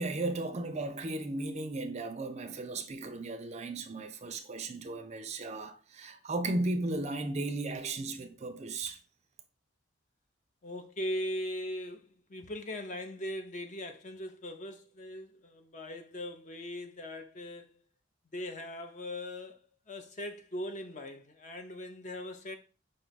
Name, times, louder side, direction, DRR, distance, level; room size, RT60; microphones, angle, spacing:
voice 1, 0.0-9.0, right 2 dB, 35° right, 0.4 m, -35 dB
voice 2, 10.6-17.8 18.3-19.6 19.9-22.6, left 1 dB, 40° left, 0.5 m, -40 dB
5.2 x 2.3 x 3.9 m
head